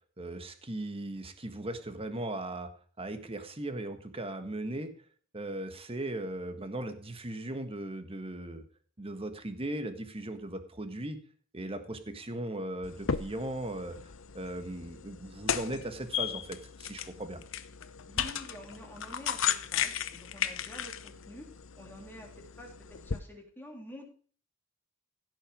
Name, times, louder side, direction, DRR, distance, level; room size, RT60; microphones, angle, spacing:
voice 1, 0.2-2.7 3.0-4.9 5.3-8.6 9.0-11.2 11.5-14.0 14.3-17.4, right 1 dB, 30° right, 8 dB, 1.5 m, -38 dB
sound 1, 12.8-23.2, left 8 dB, 70° left, 0.8 m, -36 dB
voice 2, 18.1-21.5 21.8-24.1, equal, 10° left, 0 dB, 3.3 m, -48 dB
16.0 x 6.4 x 5.0 m, 0.42 s
head